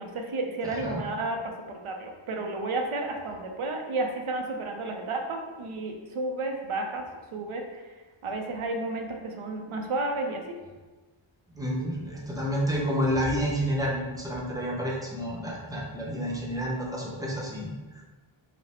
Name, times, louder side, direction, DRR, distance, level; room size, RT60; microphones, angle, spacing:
voice 1, 0.0-7.9 8.2-10.4, right 2 dB, 85° right, 3 dB, 0.8 m, -32 dB
voice 2, 0.6-1.0 11.5-17.7, equal, 5° right, -4 dB, 0.8 m, -29 dB
5.2 x 2.1 x 4.2 m, 1.3 s
wide cardioid pair, 160°, 49 cm